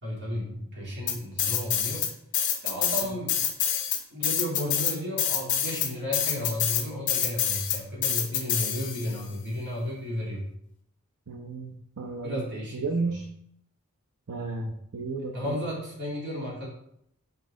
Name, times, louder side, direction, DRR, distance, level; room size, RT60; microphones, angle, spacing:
voice 1, 0.0-2.1 2.6-3.4 4.1-10.4 12.2-13.1 15.3-16.7, left 1 dB, 55° right, -4 dB, 2.4 m, -33 dB
sound 1, 1.1-2.1 2.3-9.2, left 9 dB, 55° left, 1.1 m, -26 dB
voice 2, 11.3-11.7 12.0-12.4 12.7-13.2 14.3-15.6, right 3 dB, 75° right, 2 dB, 0.7 m, -32 dB
6.0 x 5.2 x 3.8 m, 0.71 s
head